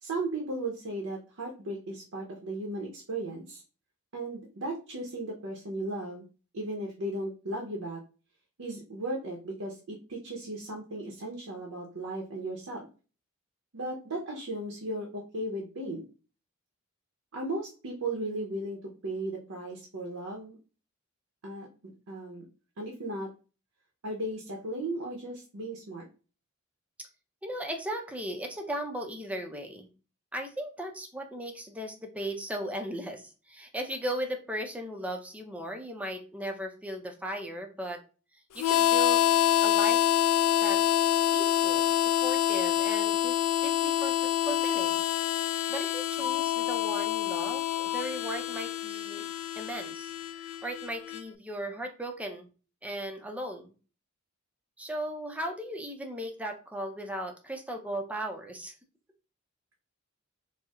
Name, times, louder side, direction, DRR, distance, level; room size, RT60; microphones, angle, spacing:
voice 1, 0.0-3.6 4.1-6.2 6.5-8.0 8.6-12.9 13.7-16.0 17.3-20.6 21.4-22.4 22.8-23.3 24.0-26.0, right 1 dB, 75° right, -1 dB, 0.7 m, -36 dB
voice 2, 27.4-29.9 30.3-38.0 38.5-39.2 39.6-40.1 40.6-43.4 43.6-45.0 45.7-49.3 49.6-52.5 52.8-53.7 54.8-58.7, right 1 dB, 5° right, 3 dB, 0.5 m, -37 dB
Harmonica, 38.6-51.2, left 12 dB, 75° left, 0.3 m, -27 dB
4.3 x 2.0 x 2.3 m, 0.35 s
head